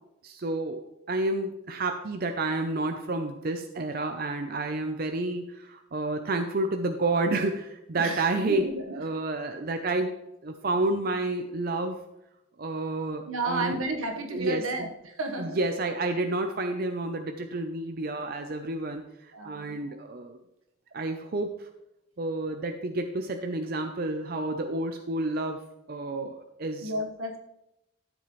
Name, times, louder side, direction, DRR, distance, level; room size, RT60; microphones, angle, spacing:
voice 1, 0.2-10.1 10.4-12.0 12.6-13.8 14.3-14.9 15.4-20.4 20.9-21.7 22.2-25.6 25.9-26.9, right 2 dB, 45° right, 6 dB, 0.6 m, -30 dB
voice 2, 8.0-9.0 13.3-15.6 19.3-19.8 26.8-27.4, right 2 dB, 85° right, 4 dB, 1.4 m, -32 dB
12.5 x 7.5 x 3.1 m, 0.86 s
head